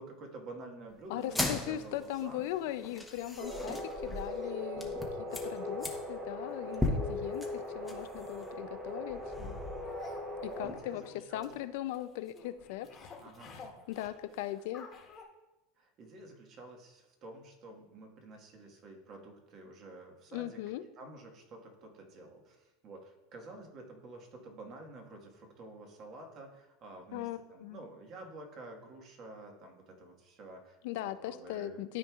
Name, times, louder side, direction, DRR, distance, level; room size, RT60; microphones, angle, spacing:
voice 1, 0.0-2.4 10.6-11.5 13.2-13.5 15.8-20.6 21.0-30.8 31.2-31.8, right 2 dB, 40° right, 2 dB, 1.6 m, -49 dB
voice 2, 1.1-4.9 5.3-9.6 10.4-13.1 13.5-14.9 20.3-20.8 27.1-27.8 30.8-32.0, left 13 dB, 70° left, 13 dB, 0.4 m, -39 dB
sound 1, 1.2-10.8, left 2 dB, 5° left, 1.0 m, -39 dB
sound 2, 3.4-10.7, left 1 dB, 80° right, 2.3 m, -40 dB
sound 3, 9.8-15.2, left 5 dB, 30° left, 1.4 m, -51 dB
12.5 x 4.6 x 2.4 m, 1.0 s
supercardioid pair, 130°, 0 cm